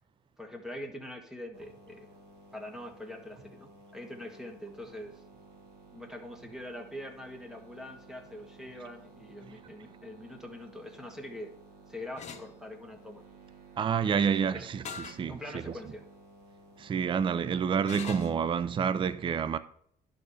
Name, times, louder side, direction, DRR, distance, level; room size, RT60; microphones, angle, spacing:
voice 1, 0.4-2.1 2.5-5.2 5.9-11.6 11.9-13.2 14.2-14.7 15.3-16.0, left 1 dB, 5° right, 1.5 m, -43 dB
sound 1, 1.5-18.6, right 3 dB, 85° right, 1.7 m, -55 dB
sound 2, 12.2-12.5 14.8-15.2 15.8-15.9 17.9-18.4, left 6 dB, 45° left, 1.0 m, -41 dB
voice 2, 13.8-15.6 16.8-19.6, right 7 dB, 30° right, 0.4 m, -28 dB
11.0 x 4.2 x 4.9 m
cardioid pair, 110°, 17 cm